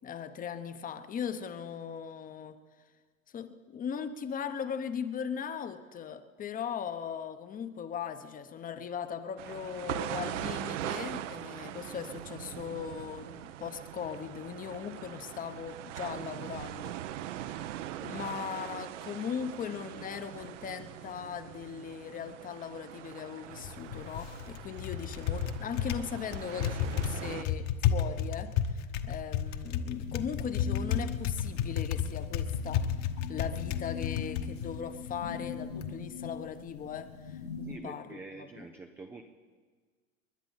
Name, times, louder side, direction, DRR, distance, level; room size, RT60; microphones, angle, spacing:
voice 1, 0.0-2.6 3.3-17.0 18.0-32.9 33.3-38.7, left 7 dB, 20° left, 11 dB, 0.9 m, -39 dB
sound 1, 9.4-27.4, right 12 dB, 55° right, 0.8 m, -41 dB
Typing, 23.5-35.9, left 8 dB, 40° left, 1.2 m, -33 dB
sound 2, 29.9-37.8, left 6 dB, 85° left, 4.8 m, -43 dB
voice 2, 37.6-39.2, right 3 dB, 5° right, 4 dB, 0.3 m, -46 dB
29.5 x 11.5 x 4.0 m, 1.5 s
hypercardioid pair, 100°, 43 cm